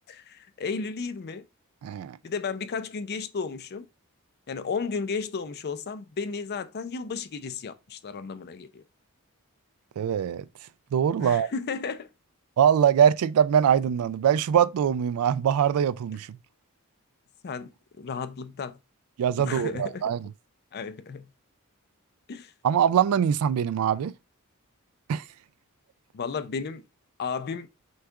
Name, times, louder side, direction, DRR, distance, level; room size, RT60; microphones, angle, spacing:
voice 1, 0.1-1.4 2.2-3.9 4.5-8.8 11.2-12.1 17.4-17.7 18.0-18.8 19.4-20.0 20.7-21.3 22.3-22.5 26.1-26.8 27.2-27.7, left 5 dB, 45° left, 0.5 m, -33 dB
voice 2, 1.8-2.2 10.0-10.4 10.9-11.5 12.6-16.3 19.2-20.2 22.6-24.1 25.1-25.2, right 8 dB, 70° right, 0.3 m, -23 dB
6.3 x 2.4 x 3.4 m
head